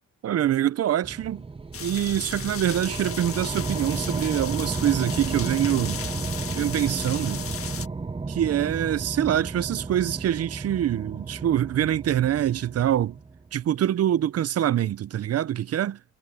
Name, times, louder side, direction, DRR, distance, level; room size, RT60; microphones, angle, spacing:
voice 1, 0.2-1.4 1.8-6.0 6.6-7.5 8.3-13.2 13.5-16.0, right 11 dB, 55° right, 0.7 m, -25 dB
sound 1, 1.0-13.6, right 4 dB, 20° right, 0.9 m, -33 dB
sound 2, 1.7-7.9, left 7 dB, 45° left, 1.8 m, -36 dB
cardioid pair, 90°, 30 cm